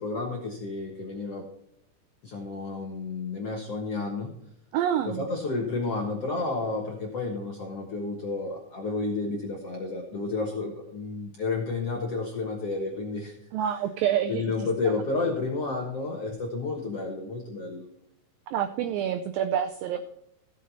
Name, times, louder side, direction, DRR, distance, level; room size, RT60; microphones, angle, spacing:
voice 1, 0.0-1.5 2.2-4.3 5.0-13.3 14.3-17.9, left 3 dB, 60° left, 0 dB, 1.6 m, -31 dB
voice 2, 4.7-5.3 13.5-14.5 18.5-20.0, right 9 dB, 85° right, 9 dB, 2.0 m, -27 dB
15.5 x 6.4 x 4.1 m, 0.76 s
omnidirectional pair, 4.8 m